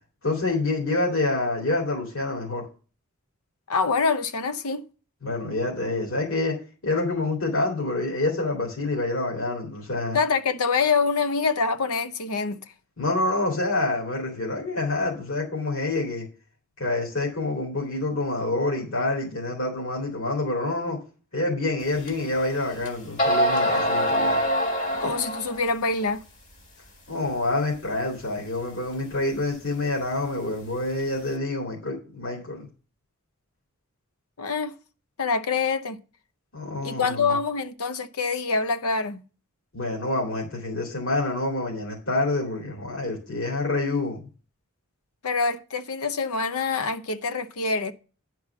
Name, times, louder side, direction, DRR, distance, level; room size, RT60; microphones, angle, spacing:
voice 1, 0.2-2.7 5.2-6.6 6.8-10.2 13.0-16.2 16.8-21.0 21.3-24.4 27.1-32.7 36.5-37.3 39.7-44.2, left 2 dB, 65° left, 2.6 m, -27 dB
voice 2, 3.7-4.8 10.1-12.6 24.9-26.2 34.4-34.7 35.2-36.0 36.8-39.2 45.2-47.9, left 4 dB, 85° left, 0.8 m, -25 dB
sound 1, 22.1-22.2 22.8-22.9 23.2-25.6, equal, 35° left, 1.6 m, -23 dB
10.5 x 4.6 x 5.8 m
head